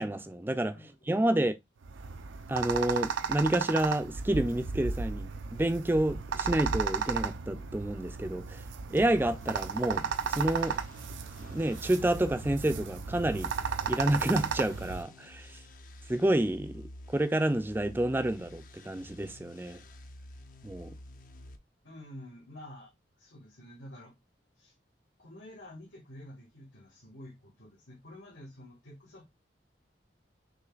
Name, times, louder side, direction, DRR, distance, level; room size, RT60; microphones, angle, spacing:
voice 1, 0.0-0.8 1.1-1.5 2.5-8.6 8.9-10.8 11.4-13.5 13.9-15.6 16.1-19.8 20.6-21.0, right 1 dB, 10° right, 0.4 m, -29 dB
voice 2, 0.7-1.3 21.8-22.9 23.2-24.1 24.6-24.7 25.2-29.3, left 1 dB, 90° left, 1.8 m, -49 dB
sound 1, 1.8-15.0, right 6 dB, 85° right, 0.5 m, -34 dB
sound 2, 9.1-21.6, left 1 dB, 45° left, 0.5 m, -50 dB
6.2 x 3.2 x 2.4 m
head